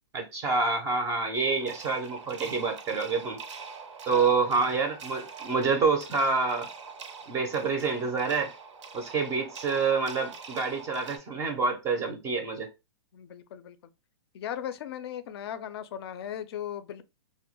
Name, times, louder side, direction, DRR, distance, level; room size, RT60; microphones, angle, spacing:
voice 1, 0.1-3.4 4.1-6.7 7.3-8.5 8.9-12.7, right 4 dB, 20° right, 0.4 m, -27 dB
sound 1, 1.3-11.2, right 5 dB, 80° right, 0.5 m, -44 dB
voice 2, 4.1-4.5 13.1-13.8 14.3-17.0, left 10 dB, 60° left, 0.4 m, -38 dB
2.2 x 2.1 x 2.8 m
hypercardioid pair, 135°, 15 cm